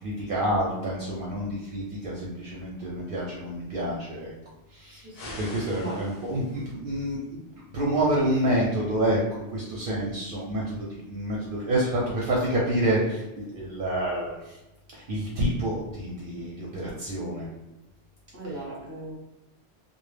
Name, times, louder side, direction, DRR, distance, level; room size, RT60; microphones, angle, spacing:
voice 1, 0.0-4.3 4.7-5.1 5.4-7.4 7.7-14.6 14.9-17.5 18.4-18.6, right 1 dB, 60° right, -4 dB, 0.6 m, -28 dB
voice 2, 4.9-6.0 18.3-19.1, right 1 dB, 15° right, -5 dB, 0.5 m, -39 dB
sound 1, 5.1-6.7, left 2 dB, 60° left, 0.4 m, -43 dB
2.1 x 2.0 x 3.2 m, 0.97 s
omnidirectional pair, 1.2 m